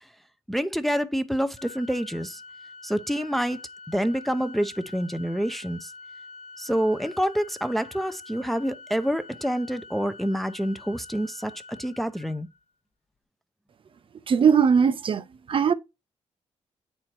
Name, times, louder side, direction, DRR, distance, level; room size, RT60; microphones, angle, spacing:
voice 1, 0.5-2.4 2.8-3.6 3.9-5.9 6.6-12.5, equal, ahead, 0.6 m, -27 dB
Organ, 1.6-12.6, left 3 dB, 65° left, 1.2 m, -46 dB
voice 2, 14.3-15.7, right 6 dB, 50° right, 0.5 m, -20 dB
8.7 x 4.4 x 3.0 m
cardioid pair, 85°, 12 cm